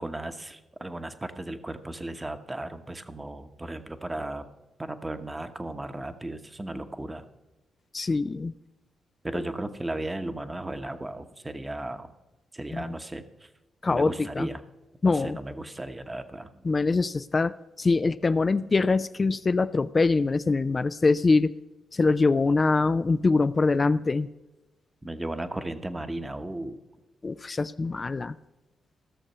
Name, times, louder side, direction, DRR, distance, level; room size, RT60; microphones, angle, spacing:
voice 1, 0.0-4.5 4.8-7.2 9.2-12.1 12.5-13.5 13.9-14.6 15.0-16.6 25.0-26.8, right 1 dB, 20° right, 9 dB, 1.0 m, -35 dB
voice 2, 7.9-8.5 9.3-9.4 12.7-12.9 13.8-14.5 15.0-15.4 16.6-21.5 21.9-24.3 27.2-28.4, left 3 dB, 40° left, 12 dB, 0.3 m, -24 dB
14.5 x 6.6 x 5.6 m, 1.1 s
supercardioid pair, 45°, 0 cm